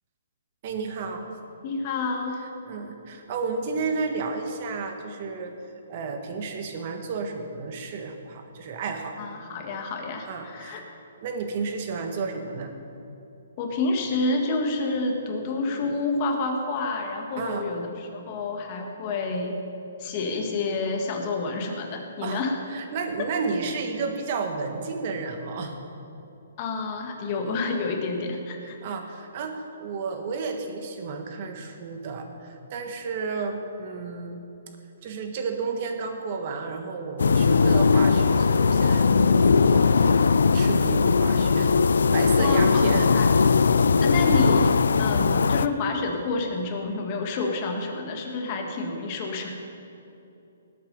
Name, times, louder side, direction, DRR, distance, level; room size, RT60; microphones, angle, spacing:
voice 1, 0.6-1.3 2.7-5.5 5.9-9.2 10.3-10.8 11.2-12.7 17.4-17.7 22.2-22.4 22.7-25.7 28.8-34.4 35.0-40.3 40.5-41.7 42.1-43.1 43.7-43.9, right 4 dB, 35° right, 5 dB, 1.5 m, -32 dB
voice 2, 1.6-2.4 9.2-10.8 13.6-19.6 20.0-22.6 26.6-28.8 42.4-43.3 44.0-44.7 45.0-49.5, left 3 dB, 30° left, 2 dB, 1.7 m, -28 dB
sound 1, 37.2-45.7, left 5 dB, 90° left, 0.4 m, -19 dB
18.5 x 8.4 x 5.4 m, 2.8 s
hypercardioid pair, 165°, 0 cm